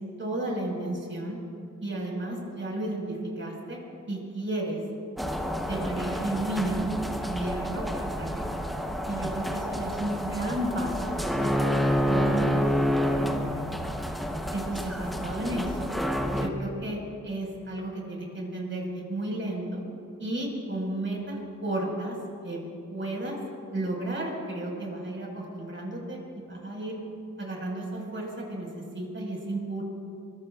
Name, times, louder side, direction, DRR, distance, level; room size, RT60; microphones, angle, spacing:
voice 1, 0.2-1.4 1.8-3.8 4.1-4.8 5.7-6.8 7.2-8.7 9.1-13.6 14.5-15.9 16.3-17.0 17.2-19.8 20.2-22.2 22.4-23.4 23.7-27.0 27.4-29.8, right 1 dB, 40° right, -2 dB, 5.2 m, -33 dB
sound 1, 5.2-16.5, equal, ahead, 0.9 m, -29 dB
24.5 x 23.5 x 2.5 m, 2.4 s
wide cardioid pair, 135°, 32 cm